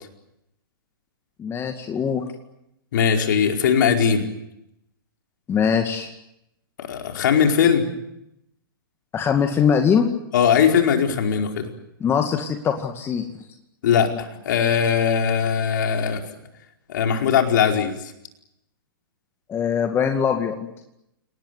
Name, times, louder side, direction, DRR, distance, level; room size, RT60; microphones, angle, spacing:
voice 1, 1.4-2.2 5.5-6.1 9.1-10.1 12.0-13.2 19.5-20.6, left 7 dB, 20° left, 5 dB, 2.3 m, -22 dB
voice 2, 2.9-4.3 6.8-7.8 10.3-11.7 13.8-16.2 16.9-18.0, left 7 dB, 55° left, 3 dB, 4.7 m, -20 dB
29.0 x 19.0 x 9.6 m, 0.86 s
figure-of-eight pair, 110°, 12 cm